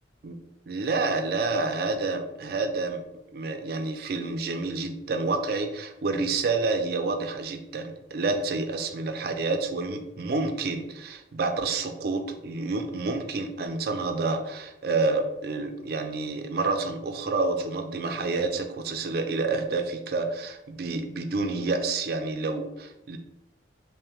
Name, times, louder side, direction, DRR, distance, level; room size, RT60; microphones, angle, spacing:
voice 1, 0.7-3.0 3.3-23.2, right 3 dB, 55° right, 6 dB, 0.4 m, -29 dB
5.5 x 2.1 x 3.0 m, 0.92 s
head